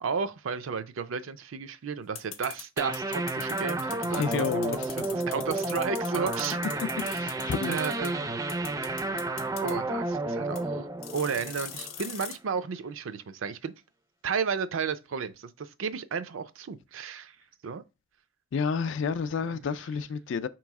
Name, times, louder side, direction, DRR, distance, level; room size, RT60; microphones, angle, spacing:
voice 1, 0.0-4.4 5.3-6.6 7.1-7.2 7.7-8.3 9.6-10.9 11.1-13.7 14.2-17.4 17.6-17.8, right 6 dB, 75° right, 0.4 m, -33 dB
sound 1, 2.1-8.1 8.5-9.7 10.5-10.6 11.0-12.4, left 9 dB, 90° left, 0.7 m, -40 dB
sound 2, 2.8-12.1, right 2 dB, 15° right, 0.3 m, -31 dB
voice 2, 4.1-4.9 7.2-7.8 18.5-20.5, left 5 dB, 65° left, 0.3 m, -30 dB
4.6 x 3.0 x 3.5 m
head